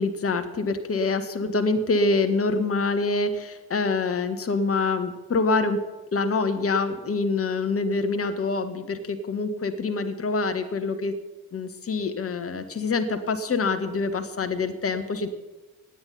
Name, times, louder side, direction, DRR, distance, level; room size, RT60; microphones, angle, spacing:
voice 1, 0.0-5.8 6.1-11.1 11.5-15.3, left 3 dB, 30° left, 7 dB, 1.6 m, -25 dB
17.5 x 8.8 x 5.7 m, 1.2 s
figure-of-eight pair, 40°, 43 cm